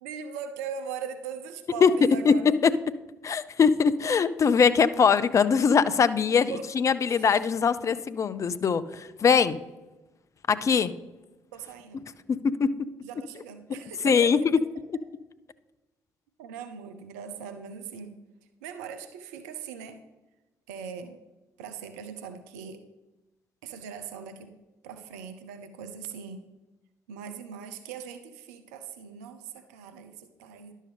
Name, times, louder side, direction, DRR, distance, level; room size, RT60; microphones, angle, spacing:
voice 1, 0.0-2.4 6.5-6.7 7.1-7.3 11.5-12.0 13.0-14.3 16.4-18.1 18.6-20.0 20.7-21.2 21.6-22.8 23.6-24.5 24.8-26.4 27.1-30.7, right 7 dB, 75° right, 8 dB, 0.5 m, -40 dB
voice 2, 3.2-9.6 10.5-10.9 12.3-12.7 14.0-14.4, left 6 dB, 40° left, 14 dB, 0.5 m, -22 dB
11.5 x 6.5 x 3.3 m, 1.1 s
figure-of-eight pair, 45°, 8 cm